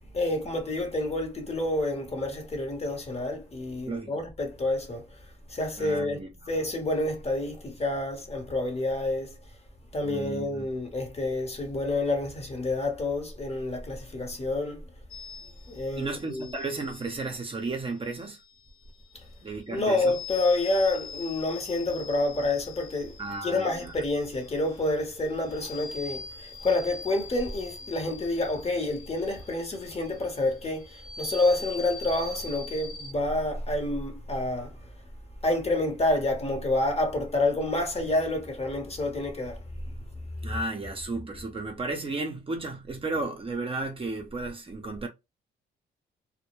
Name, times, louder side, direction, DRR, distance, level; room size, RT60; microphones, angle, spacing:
voice 1, 0.1-5.0 5.5-6.2 6.5-9.3 9.9-14.8 15.7-16.6 19.7-23.1 23.4-34.7 35.4-39.6, left 2 dB, 30° left, 0.9 m, -28 dB
voice 2, 3.9-4.2 5.8-6.5 10.0-10.7 16.0-18.4 19.4-20.2 23.2-23.9 40.4-45.1, right 3 dB, 25° right, 0.6 m, -34 dB
sound 1, 15.1-33.1, left 4 dB, 85° left, 0.7 m, -44 dB
2.1 x 2.1 x 3.0 m
cardioid pair, 90°, 20 cm